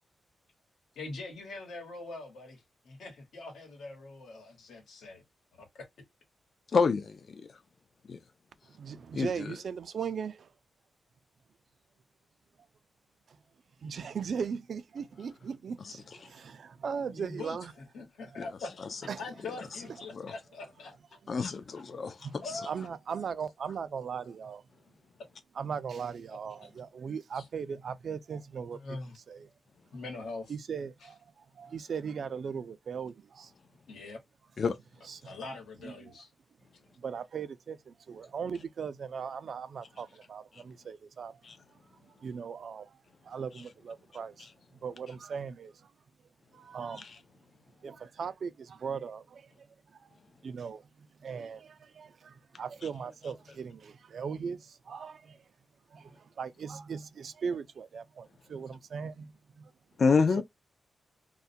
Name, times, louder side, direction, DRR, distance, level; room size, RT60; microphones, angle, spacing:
voice 1, 0.9-5.2 5.6-5.9 17.1-18.8 19.2-21.8 22.4-22.7 27.3-27.4 28.7-29.2 29.9-30.5 31.0-31.1 33.9-34.2 35.2-36.3, left 3 dB, 90° left, 1.1 m, -43 dB
voice 2, 6.7-7.5 8.1-8.2 9.1-9.5 20.1-20.3 21.3-22.2 22.4-22.5 34.6-34.8 41.4-41.6 47.0-47.1 60.0-60.4, left 4 dB, 50° left, 0.3 m, -27 dB
voice 3, 8.7-10.5 13.8-17.7 18.2-18.4 19.1-19.2 21.9-22.4 22.7-24.6 25.6-29.0 29.3-29.5 30.5-33.5 35.0-35.4 35.8-36.1 37.0-41.4 42.0-43.0 43.2-44.5 44.8-45.9 46.5-47.1 47.8-49.7 50.0-50.1 50.4-55.4 55.9-59.7 60.4-60.5, right 6 dB, 60° right, 0.3 m, -39 dB
2.3 x 2.1 x 2.5 m
cardioid pair, 110°, 0 cm